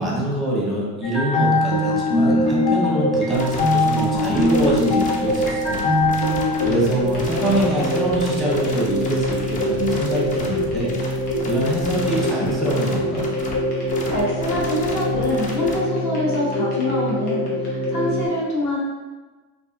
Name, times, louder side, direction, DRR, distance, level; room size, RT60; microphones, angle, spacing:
voice 1, 0.0-5.9 6.6-10.9 11.5-13.3, right 1 dB, ahead, -4 dB, 0.7 m, -24 dB
sound 1, 1.0-18.3, left 1 dB, 90° left, 0.9 m, -23 dB
sound 2, 3.3-15.7, left 2 dB, 20° left, 0.3 m, -33 dB
voice 2, 13.8-18.8, left 1 dB, 40° left, -4 dB, 0.8 m, -25 dB
2.5 x 2.4 x 2.4 m, 1.3 s
supercardioid pair, 95°, 43 cm